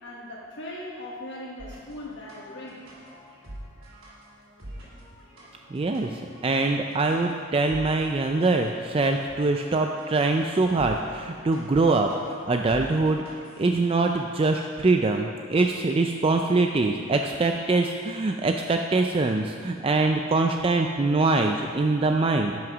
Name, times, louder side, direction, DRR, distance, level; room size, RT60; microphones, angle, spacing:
voice 1, 0.0-2.9, left 1 dB, 60° left, -5 dB, 1.2 m, -39 dB
sound 1, 1.6-13.8, right 1 dB, 90° right, 3.0 m, -46 dB
voice 2, 5.7-13.2 13.6-22.6, right 3 dB, 25° right, 4 dB, 0.4 m, -23 dB
10.5 x 6.3 x 6.1 m, 2.2 s
head